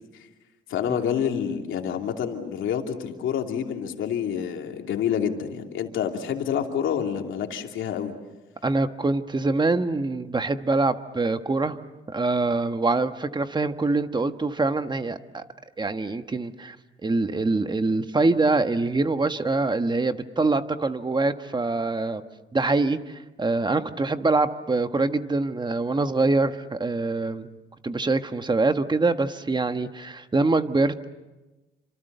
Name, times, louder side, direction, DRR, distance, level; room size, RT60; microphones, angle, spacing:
voice 1, 0.7-8.1, left 8 dB, 80° left, 3 dB, 2.9 m, -28 dB
voice 2, 8.6-11.8 12.1-15.4 15.8-16.8 17.0-22.2 22.5-27.5 27.8-31.1, right 3 dB, 20° right, 9 dB, 1.5 m, -24 dB
28.5 x 26.5 x 6.9 m, 1.1 s
cardioid pair, 90°, 20 cm